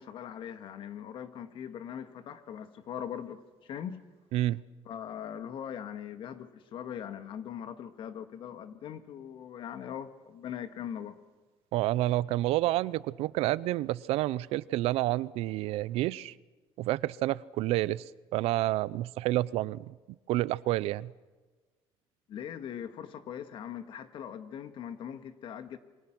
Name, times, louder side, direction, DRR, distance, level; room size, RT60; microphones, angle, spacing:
voice 1, 0.0-4.0 4.9-11.2 22.3-25.8, left 9 dB, 55° left, 10 dB, 1.8 m, -41 dB
voice 2, 4.3-4.6 11.7-16.3 16.8-18.0 18.3-19.9 20.3-21.1, right 16 dB, 75° right, 20 dB, 0.6 m, -29 dB
28.0 x 23.5 x 6.2 m, 1.3 s
cardioid pair, 145°, 10 cm